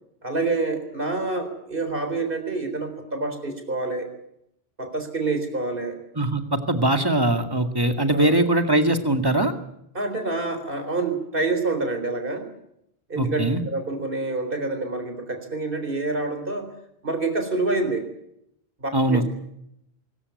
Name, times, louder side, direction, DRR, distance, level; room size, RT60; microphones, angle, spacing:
voice 1, 0.2-4.1 4.8-6.0 8.1-8.4 9.9-12.5 13.1-16.7 17.0-18.1 18.8-19.2, right 3 dB, 60° right, 7 dB, 4.3 m, -27 dB
voice 2, 6.2-9.5 13.2-13.6 18.9-19.2, right 1 dB, 20° right, 7 dB, 2.2 m, -21 dB
24.5 x 14.5 x 9.6 m, 0.78 s
omnidirectional pair, 1.0 m